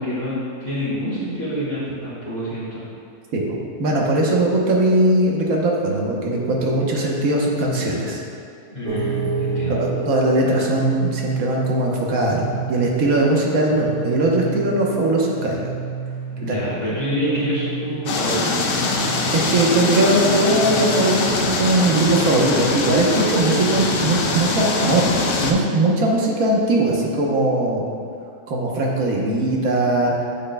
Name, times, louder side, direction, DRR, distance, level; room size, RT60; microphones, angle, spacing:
voice 1, 0.0-2.8 8.7-9.9 16.2-18.6, equal, 35° left, -12 dB, 1.9 m, -27 dB
voice 2, 3.3-8.2 9.7-15.6 16.4-16.6 19.3-25.0 25.4-27.8 28.5-30.2, right 2 dB, 65° right, -2 dB, 1.4 m, -20 dB
sound 1, 8.8-24.7, right 5 dB, 50° right, 1.9 m, -31 dB
sound 2, 18.1-25.5, left 3 dB, 70° left, 0.5 m, -23 dB
8.9 x 6.4 x 2.2 m, 2.5 s
omnidirectional pair, 1.6 m